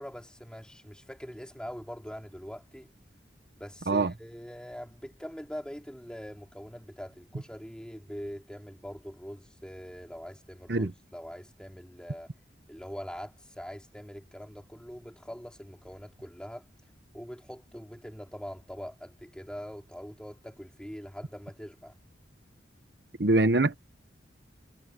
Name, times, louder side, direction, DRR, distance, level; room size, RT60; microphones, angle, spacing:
voice 1, 0.0-2.9 3.6-12.3 12.7-16.7 17.1-22.0, equal, 5° left, 3.4 m, -43 dB
voice 2, 23.2-23.8, right 2 dB, 65° right, 1.0 m, -23 dB
head